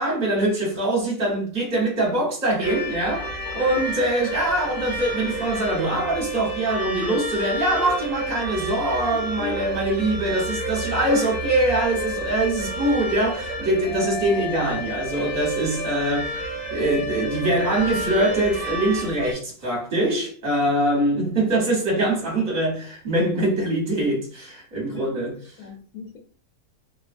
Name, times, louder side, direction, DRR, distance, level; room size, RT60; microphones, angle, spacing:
voice 1, 0.0-3.2 3.5-25.4, right 1 dB, 30° right, 1.1 m, -23 dB
sound 1, 2.6-19.3, right 1 dB, 55° right, 0.5 m, -30 dB
voice 2, 3.2-3.8 9.4-9.6 14.0-14.2 24.9-25.1 25.6-26.2, left 5 dB, 70° left, 1.1 m, -38 dB
2.7 x 2.3 x 2.5 m
omnidirectional pair, 1.6 m